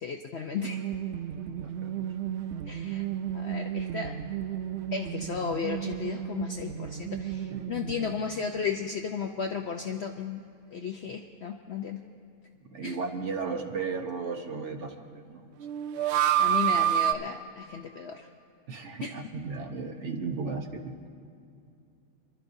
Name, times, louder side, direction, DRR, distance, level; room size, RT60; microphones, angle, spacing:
voice 1, 0.0-0.8 2.7-3.1 3.3-4.1 4.9-10.4 10.7-12.0 12.8-13.0 16.4-18.3 19.0-19.1, left 6 dB, 60° left, 4 dB, 0.7 m, -34 dB
sound 1, 0.6-8.4 8.7-8.8 15.6-17.1, right 10 dB, 75° right, 0.6 m, -30 dB
voice 2, 1.5-2.0 7.5-7.7 12.7-15.4 18.7-21.1, right 4 dB, 55° right, 4 dB, 1.1 m, -35 dB
26.5 x 12.5 x 2.7 m, 2.6 s
omnidirectional pair, 1.7 m